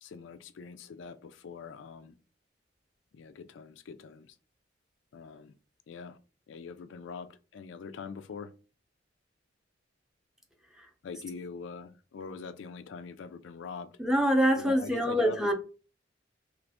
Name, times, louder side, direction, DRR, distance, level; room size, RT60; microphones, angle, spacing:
voice 1, 0.0-2.1 3.1-4.3 5.1-5.5 5.9-6.2 6.5-8.5 11.0-13.9 14.6-15.5, left 5 dB, 80° left, 0.4 m, -43 dB
voice 2, 14.0-15.5, equal, 5° right, 0.5 m, -25 dB
2.9 x 2.5 x 3.4 m
head